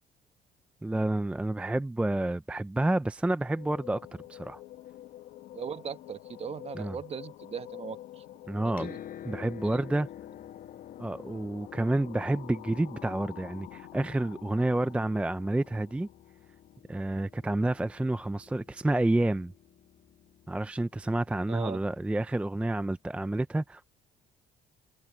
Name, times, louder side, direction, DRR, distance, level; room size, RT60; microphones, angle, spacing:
voice 1, 0.8-4.0 4.3-4.6 6.7-7.0 8.5-8.9 9.2-10.1 11.0-16.1 16.9-19.5 20.5-23.9, right 2 dB, 5° right, 0.5 m, -29 dB
sound 1, 3.6-16.8, left 14 dB, 75° left, 1.5 m, -48 dB
voice 2, 5.5-8.2 8.5-9.0 9.6-9.9 21.5-21.8, right 7 dB, 35° right, 1.3 m, -39 dB
Piano, 8.8-22.3 23.3-23.4, left 10 dB, 55° left, 5.8 m, -49 dB
cardioid pair, 110°, 17 cm